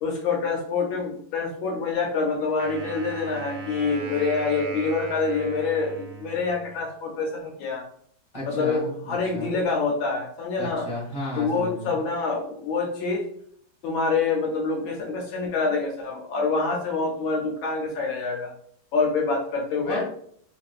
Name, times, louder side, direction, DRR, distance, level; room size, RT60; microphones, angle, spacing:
voice 1, 0.0-7.8 8.5-8.8 9.1-10.8 11.4-13.2 13.8-18.5 18.9-20.0, left 4 dB, 75° left, 0 dB, 1.3 m, -26 dB
Wind instrument woodwind instrument, 2.6-6.9, right 5 dB, 80° right, 1.4 m, -38 dB
voice 2, 8.3-9.5 10.6-12.0 19.8-20.0, left 2 dB, 20° left, -4 dB, 1.1 m, -33 dB
3.9 x 2.5 x 2.4 m, 0.63 s
omnidirectional pair, 2.3 m